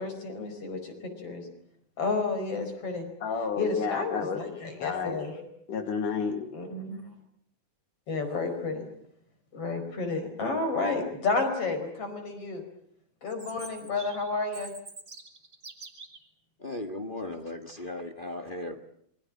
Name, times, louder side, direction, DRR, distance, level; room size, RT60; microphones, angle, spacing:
voice 1, 0.0-1.4 2.0-3.1 3.6-5.4 6.5-7.0 8.1-8.9 9.5-12.6 13.2-14.7, left 3 dB, 45° left, 7 dB, 5.8 m, -31 dB
voice 2, 3.2-5.2 5.7-6.5, left 5 dB, 90° left, 6 dB, 3.8 m, -31 dB
Chirp tweet, 13.3-16.3, right 3 dB, 30° right, 2.9 m, -46 dB
voice 3, 16.6-18.8, left 1 dB, 30° left, 4 dB, 0.9 m, -37 dB
27.5 x 22.5 x 7.5 m, 0.68 s
omnidirectional pair, 3.6 m